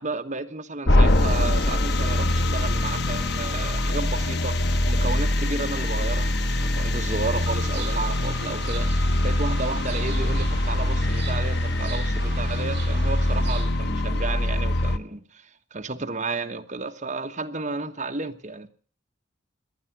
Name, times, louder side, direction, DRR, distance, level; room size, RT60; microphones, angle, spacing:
voice 1, 0.0-18.7, right 3 dB, 40° right, 1.2 m, -32 dB
sound 1, 0.9-15.0, left 1 dB, 60° left, 1.1 m, -23 dB
sound 2, 7.3-13.7, right 2 dB, 60° right, 4.9 m, -37 dB
18.0 x 12.0 x 6.1 m
head